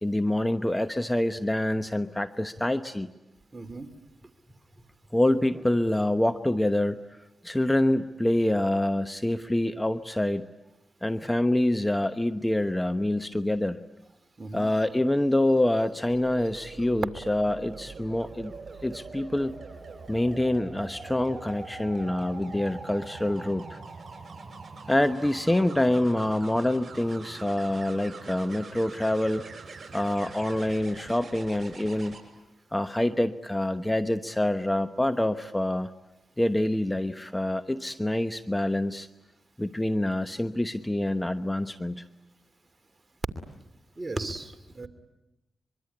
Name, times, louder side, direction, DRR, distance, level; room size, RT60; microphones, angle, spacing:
voice 1, 0.0-3.1 5.1-7.0 7.4-10.4 11.0-13.8 14.5-18.5 18.8-19.5 20.1-23.8 24.9-29.4 29.9-32.2 32.7-35.9 36.4-39.1 39.6-42.0, left 1 dB, 15° left, 11 dB, 1.0 m, -26 dB
voice 2, 3.5-3.9 14.4-14.7 44.0-44.9, right 2 dB, 35° right, 8 dB, 2.7 m, -36 dB
sound 1, 16.1-32.2 34.1-34.4, right 4 dB, 50° right, 6.8 m, -43 dB
24.5 x 23.0 x 9.9 m, 0.93 s
supercardioid pair, 50°, 0 cm